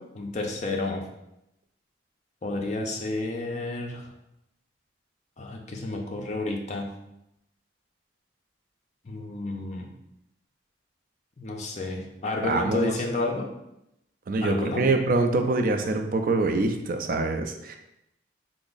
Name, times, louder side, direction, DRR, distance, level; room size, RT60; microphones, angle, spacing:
voice 1, 0.2-1.0 2.4-4.1 5.4-6.9 9.0-9.9 11.4-13.5 14.4-14.9, left 2 dB, 40° left, 1 dB, 0.5 m, -30 dB
voice 2, 12.4-12.9 14.3-17.8, right 3 dB, 50° right, 5 dB, 0.3 m, -25 dB
3.3 x 2.0 x 3.8 m, 0.84 s
head